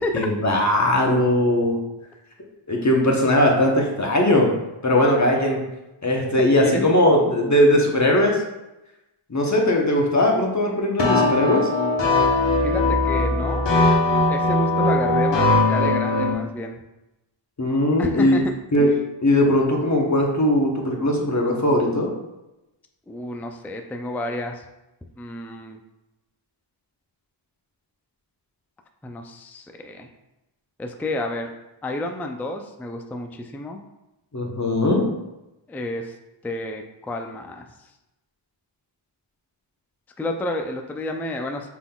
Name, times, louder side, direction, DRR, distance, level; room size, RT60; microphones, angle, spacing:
voice 1, 0.1-1.8 2.7-4.5 4.8-5.6 6.0-8.4 9.3-11.7 17.6-18.4 18.7-18.9 19.2-22.1 34.3-35.0, left 1 dB, 35° left, 0 dB, 0.9 m, -19 dB
voice 2, 6.4-7.0 12.6-13.7 14.3-16.8 18.0-18.4 18.8-19.0 23.1-24.6 25.2-25.8 29.0-30.1 30.8-31.5 31.8-33.8 35.7-36.1 36.4-37.7 40.2-41.7, left 1 dB, 5° left, 4 dB, 0.3 m, -30 dB
sound 1, 11.0-16.3, left 2 dB, 60° left, 1.0 m, -20 dB
6.0 x 3.7 x 2.3 m, 0.96 s
wide cardioid pair, 75°, 50 cm